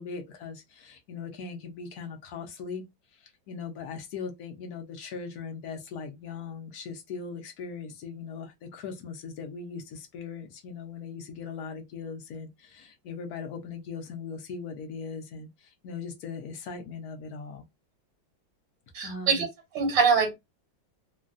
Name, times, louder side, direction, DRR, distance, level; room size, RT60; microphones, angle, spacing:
voice 1, 0.0-2.8 3.2-17.6 19.0-19.5, left 5 dB, 65° left, 1.0 m, -39 dB
voice 2, 18.9-19.5 19.7-20.3, right 5 dB, 80° right, 1.4 m, -23 dB
3.1 x 2.2 x 2.5 m
omnidirectional pair, 2.0 m